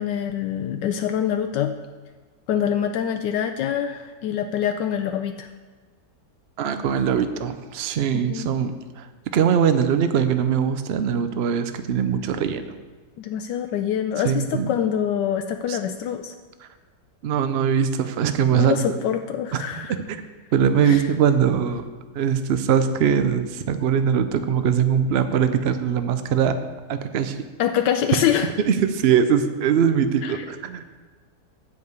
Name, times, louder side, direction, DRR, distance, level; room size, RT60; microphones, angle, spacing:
voice 1, 0.0-1.8 2.5-5.5 8.1-8.5 13.2-16.3 18.5-19.9 20.8-21.1 27.6-28.5 30.2-30.4, left 9 dB, 80° left, 6 dB, 1.2 m, -25 dB
voice 2, 6.6-9.1 9.3-12.6 14.2-14.7 15.7-15.8 17.2-18.8 19.5-19.6 19.9-20.2 20.5-21.8 22.2-26.5 26.9-27.4 28.7-30.8, right 8 dB, 85° right, 9 dB, 0.5 m, -21 dB
9.3 x 5.3 x 7.9 m, 1.4 s
omnidirectional pair, 1.9 m